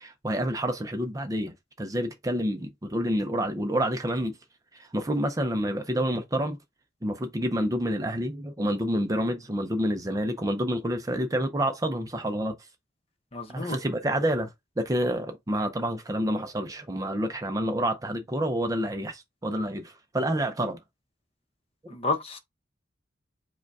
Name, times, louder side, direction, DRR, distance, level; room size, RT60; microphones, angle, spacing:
voice 1, 0.0-1.5 1.8-4.4 4.9-6.6 7.0-12.5 13.5-14.5 14.8-20.8, equal, 15° right, 0.5 m, -28 dB
voice 2, 13.3-13.8 21.9-22.4, left 3 dB, 30° left, 0.8 m, -30 dB
4.9 x 2.3 x 4.6 m
head